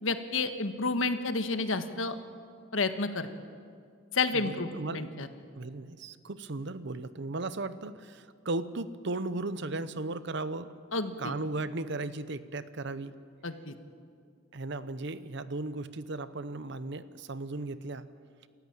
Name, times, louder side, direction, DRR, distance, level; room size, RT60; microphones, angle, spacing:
voice 1, 0.0-2.1 2.7-3.3 4.1-5.3 10.9-11.4 13.4-13.7, left 3 dB, 80° left, 9 dB, 1.5 m, -30 dB
voice 2, 4.3-5.1 5.6-10.7 11.2-13.1 14.5-18.1, right 2 dB, 60° right, 14 dB, 0.9 m, -36 dB
29.0 x 14.0 x 8.9 m, 2.2 s
head